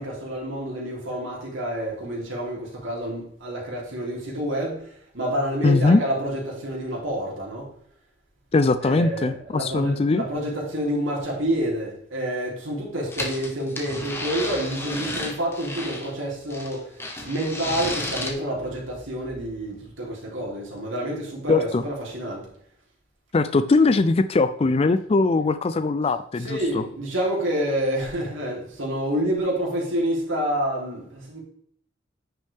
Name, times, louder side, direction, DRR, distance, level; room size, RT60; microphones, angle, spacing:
voice 1, 0.0-4.8 5.1-7.7 8.8-16.9 17.3-22.4 26.4-31.4, right 1 dB, 80° right, -3 dB, 3.4 m, -28 dB
voice 2, 5.6-6.0 8.5-10.2 21.5-21.8 23.3-26.8, left 3 dB, 30° left, 12 dB, 0.4 m, -20 dB
sound 1, 13.1-16.1 16.5-18.3, left 2 dB, 15° left, 1.3 m, -32 dB
9.9 x 6.3 x 3.5 m, 0.64 s
head